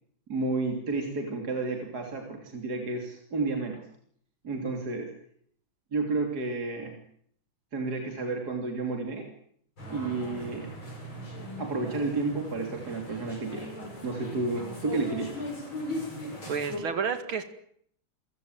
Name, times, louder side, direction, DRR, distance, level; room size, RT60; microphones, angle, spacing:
voice 1, 0.3-3.8 4.4-5.1 5.9-7.0 7.7-9.3 9.9-10.7 11.6-13.7 14.0-15.4, right 3 dB, 50° right, 2 dB, 3.7 m, -31 dB
sound 1, 9.8-16.8, left 1 dB, 85° left, 7.8 m, -39 dB
voice 2, 16.5-17.4, right 6 dB, 90° right, 9 dB, 2.8 m, -30 dB
28.5 x 16.5 x 9.1 m, 0.66 s
omnidirectional pair, 2.2 m